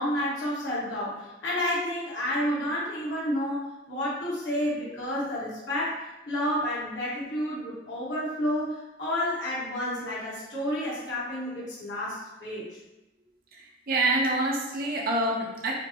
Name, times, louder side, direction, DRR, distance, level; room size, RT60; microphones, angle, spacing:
voice 1, 0.0-12.7, left 1 dB, 75° left, -9 dB, 1.4 m, -30 dB
voice 2, 13.5-15.7, right 2 dB, 50° right, -2 dB, 0.7 m, -27 dB
5.0 x 2.0 x 2.8 m, 0.99 s
head